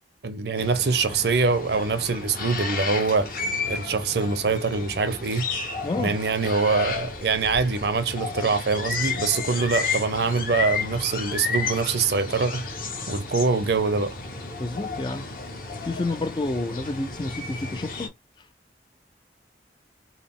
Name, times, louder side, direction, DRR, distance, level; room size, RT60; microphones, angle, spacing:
voice 1, 0.2-3.3 3.7-5.4 6.0-12.6 13.1-14.1, right 4 dB, 65° right, 0.5 m, -24 dB
sound 1, 0.6-18.1, left 4 dB, 50° left, 1.0 m, -32 dB
voice 2, 5.8-6.2 14.6-15.3 15.8-18.5, left 2 dB, 25° left, 0.3 m, -30 dB
3.9 x 2.0 x 3.5 m
head